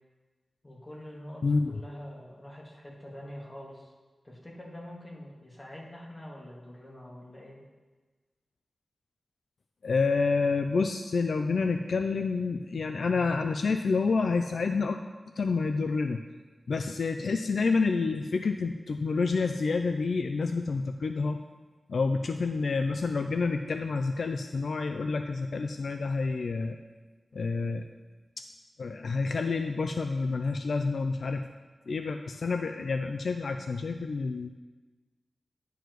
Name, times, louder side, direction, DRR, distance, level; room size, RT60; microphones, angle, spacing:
voice 1, 0.6-3.9 4.2-7.6, equal, 25° left, -4 dB, 2.1 m, -45 dB
voice 2, 9.8-15.0 15.4-16.2 16.7-21.4 21.9-26.8 27.3-27.9 28.4-28.5 28.8-31.5 31.9-34.5, left 4 dB, 75° left, 7 dB, 0.3 m, -28 dB
10.5 x 6.9 x 3.1 m, 1.3 s
wide cardioid pair, 75°, 0 cm